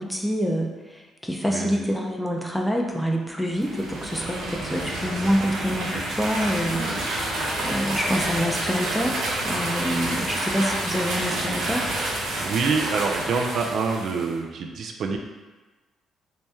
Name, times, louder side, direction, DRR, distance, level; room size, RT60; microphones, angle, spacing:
voice 1, 0.0-7.2 7.6-11.9, equal, 5° left, 0 dB, 0.5 m, -27 dB
voice 2, 1.5-1.8 12.4-15.2, right 5 dB, 65° right, 3 dB, 0.3 m, -26 dB
sound 1, 3.5-14.3, right 1 dB, 85° right, 0.8 m, -29 dB
3.0 x 2.8 x 3.5 m, 1.2 s
cardioid pair, 90°, 0 cm